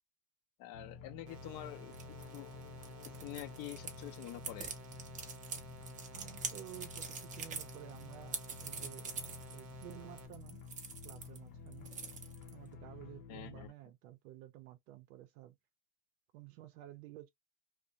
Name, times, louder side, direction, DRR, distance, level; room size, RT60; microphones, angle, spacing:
voice 1, 0.6-2.0 2.3-2.5 3.2-4.7 13.3-13.7, left 13 dB, 45° left, 0.5 m, -47 dB
sound 1, 0.7-13.7, left 6 dB, 65° left, 0.8 m, -51 dB
sound 2, 1.3-10.3, right 5 dB, 35° right, 0.8 m, -54 dB
sound 3, 1.9-11.4 11.7-12.7, right 5 dB, 20° right, 0.4 m, -44 dB
voice 2, 6.1-9.1 9.5-10.6 11.0-11.9 12.5-15.6 16.3-17.3, right 14 dB, 75° right, 0.5 m, -52 dB
2.4 x 2.0 x 2.7 m
supercardioid pair, 140°, 44 cm